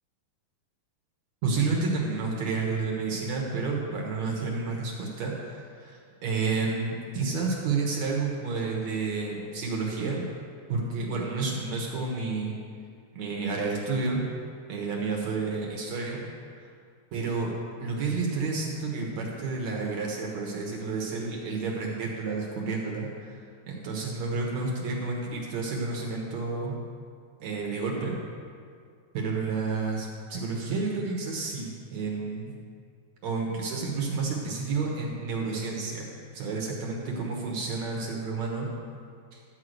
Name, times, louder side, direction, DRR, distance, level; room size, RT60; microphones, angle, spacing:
voice 1, 1.4-10.2 10.7-12.6 13.1-14.2 14.7-16.2 17.1-17.5 17.8-23.4 23.7-26.7 27.4-28.2 29.1-32.5 33.2-36.1 36.3-38.7 39.3-39.4, right 4 dB, 60° right, -2 dB, 2.3 m, -30 dB
12.5 x 4.8 x 7.9 m, 2.2 s
omnidirectional pair, 4.0 m